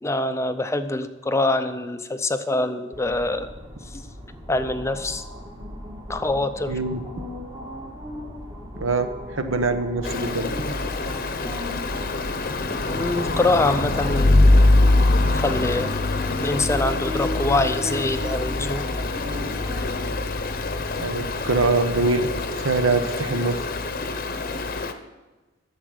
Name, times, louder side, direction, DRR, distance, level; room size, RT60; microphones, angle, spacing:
voice 1, 0.0-3.5 3.9-4.1 4.5-5.2 6.1-6.7 12.9-14.4 15.3-18.9, left 2 dB, 15° left, 9 dB, 0.5 m, -25 dB
sound 1, 2.9-22.4, left 1 dB, 20° right, 1.5 m, -37 dB
voice 2, 6.7-7.0 8.8-10.6 21.0-22.3 22.6-23.6, right 3 dB, 75° right, 8 dB, 1.0 m, -23 dB
Stream, 10.0-24.9, left 2 dB, 45° left, 0.8 m, -23 dB
11.0 x 7.3 x 6.6 m, 1.2 s
head